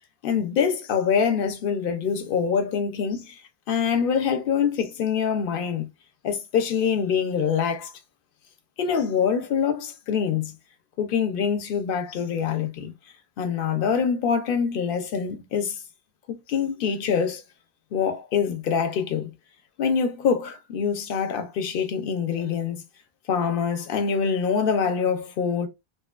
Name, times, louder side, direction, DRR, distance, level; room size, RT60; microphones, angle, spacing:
voice 1, 0.2-3.4 3.7-5.9 6.2-7.9 8.8-10.5 11.0-12.9 13.4-15.8 16.3-17.4 17.9-19.3 19.8-22.8 23.3-25.7, left 7 dB, 65° left, 0.7 m, -25 dB
2.8 x 2.2 x 2.3 m
omnidirectional pair, 1.1 m